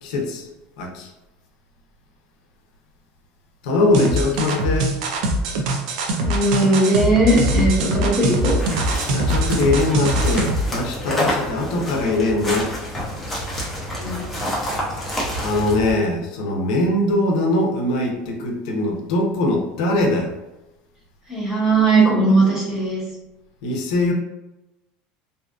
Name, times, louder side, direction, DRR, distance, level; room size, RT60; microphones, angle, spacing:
voice 1, 0.0-0.5 0.8-1.1 3.6-5.0 9.1-12.8 15.4-20.3 23.6-24.1, left 2 dB, 85° left, 1 dB, 0.6 m, -21 dB
sound 1, 3.9-10.7, right 1 dB, 75° right, 0.4 m, -22 dB
voice 2, 6.2-8.6 14.0-14.5 21.3-23.0, right 2 dB, 15° right, -6 dB, 1.0 m, -18 dB
sound 2, 8.2-15.9, equal, 5° left, 0.6 m, -28 dB
2.6 x 2.3 x 2.4 m, 0.98 s
cardioid pair, 175°, 4 cm